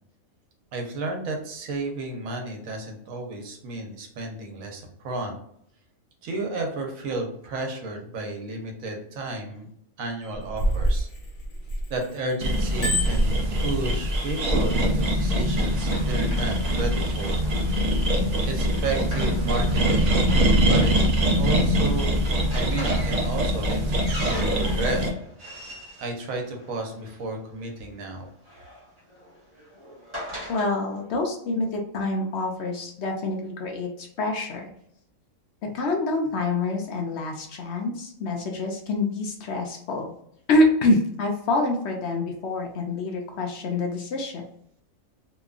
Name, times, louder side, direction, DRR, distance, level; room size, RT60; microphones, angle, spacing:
voice 1, 0.7-5.4 6.2-9.7 10.0-11.1 11.9-13.3 13.6-17.4 18.5-20.3 20.6-20.9 21.3-22.2 22.5-25.0 26.0-28.3, right 2 dB, 85° right, 2 dB, 1.1 m, -32 dB
Bicycle bell, 10.2-12.1 12.5-14.2 14.8-15.0, equal, 85° left, 1.3 m, -26 dB
sound 1, 12.4-25.1, equal, 65° right, 0.4 m, -23 dB
Run, 14.9-27.2 28.2-30.7, equal, 25° right, 0.9 m, -42 dB
voice 2, 30.5-34.7 35.6-40.1 40.5-44.4, left 2 dB, 65° left, 2 dB, 0.7 m, -26 dB
2.8 x 2.3 x 2.3 m, 0.70 s
omnidirectional pair, 1.4 m